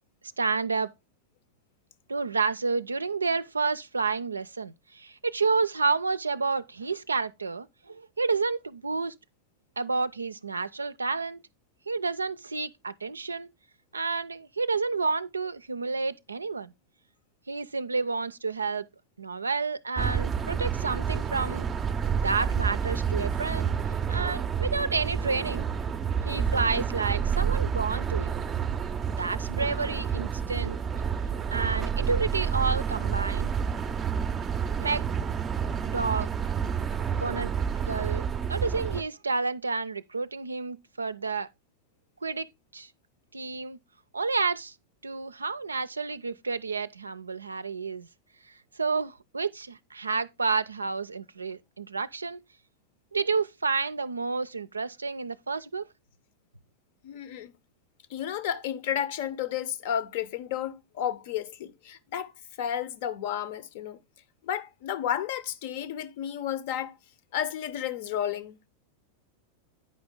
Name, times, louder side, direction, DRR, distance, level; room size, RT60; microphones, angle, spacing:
voice 1, 0.4-0.9 2.1-9.1 9.8-11.4 11.9-13.5 13.9-16.7 17.5-18.9 19.2-21.7 22.1-23.7 24.1-25.7 26.2-28.3 29.2-30.8 31.5-33.5 34.8-35.1 35.9-36.3 37.1-37.5 37.8-41.5 42.2-42.5 42.7-42.9 43.3-43.8 44.1-44.8 45.0-48.1 48.5-52.4 53.1-55.9, right 4 dB, 75° right, 0.4 m, -30 dB
sound 1, 20.0-39.0, right 7 dB, 20° right, 0.5 m, -29 dB
voice 2, 57.0-57.5 58.1-62.3 62.6-64.0 64.4-66.9 67.3-68.7, left 10 dB, 50° left, 0.7 m, -32 dB
9.4 x 5.1 x 3.6 m
figure-of-eight pair, 90°, 0 cm